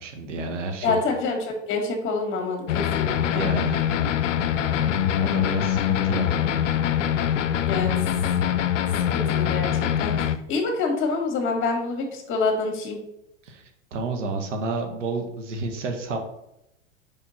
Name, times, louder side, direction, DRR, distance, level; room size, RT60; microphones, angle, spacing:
voice 1, 0.0-1.0 3.3-3.8 5.2-6.3 13.4-16.2, right 3 dB, 75° right, 4 dB, 1.4 m, -30 dB
voice 2, 0.8-3.5 7.7-7.9 9.1-13.0, left 4 dB, 35° left, 2 dB, 1.9 m, -27 dB
sound 1, 2.7-10.4, left 9 dB, 85° left, 0.6 m, -23 dB
5.2 x 4.9 x 4.2 m, 0.82 s
hypercardioid pair, 115°, 37 cm